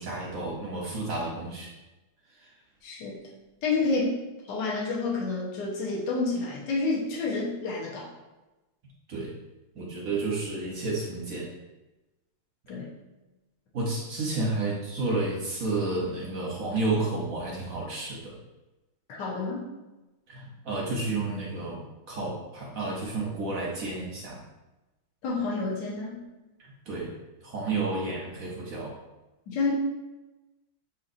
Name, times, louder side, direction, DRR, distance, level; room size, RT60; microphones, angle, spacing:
voice 1, 0.0-1.7 9.1-9.3 9.8-11.5 13.7-18.4 20.3-24.4 26.9-27.1 27.4-29.0, right 2 dB, 60° right, -3 dB, 0.9 m, -31 dB
voice 2, 2.8-3.2 3.6-4.1 4.5-8.1 12.7-13.0 19.1-19.6 25.2-26.2 27.7-27.8 29.5-29.7, left 3 dB, 60° left, -4 dB, 1.5 m, -29 dB
6.9 x 2.9 x 2.6 m, 1.1 s
omnidirectional pair, 2.3 m